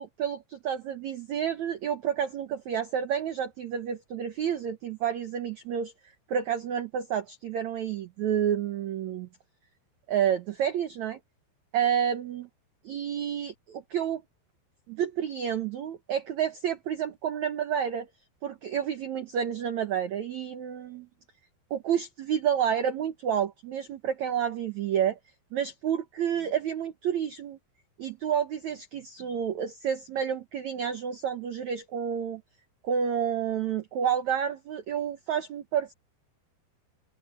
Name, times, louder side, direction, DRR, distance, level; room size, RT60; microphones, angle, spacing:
voice 1, 0.0-5.9 6.3-9.3 10.1-11.2 11.7-12.5 12.8-14.2 14.9-18.1 18.4-21.1 21.7-25.2 25.5-27.6 28.0-32.4 32.8-35.9, right 8 dB, 75° right, 1.6 m, -29 dB
open air
omnidirectional pair, 5.1 m